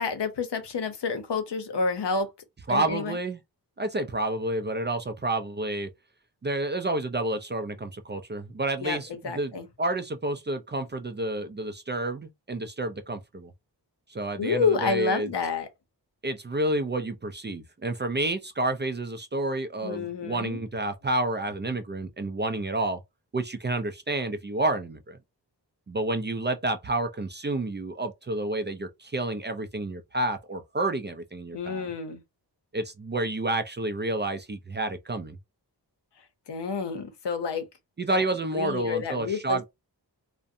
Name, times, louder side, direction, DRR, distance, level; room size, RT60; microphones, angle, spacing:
voice 1, 0.0-2.3 2.7-3.2 8.8-9.7 14.4-15.7 19.8-20.6 31.5-32.2 36.5-37.7 38.1-38.2 38.5-39.7, left 5 dB, 75° left, 0.7 m, -29 dB
voice 2, 2.7-3.4 3.8-5.9 6.4-9.1 9.4-9.5 9.8-13.5 14.1-15.3 16.2-23.0 23.3-25.2 25.9-31.9 32.7-35.4 38.0-39.6, right 2 dB, 30° right, 0.3 m, -29 dB
2.5 x 2.1 x 2.6 m
wide cardioid pair, 55°, 42 cm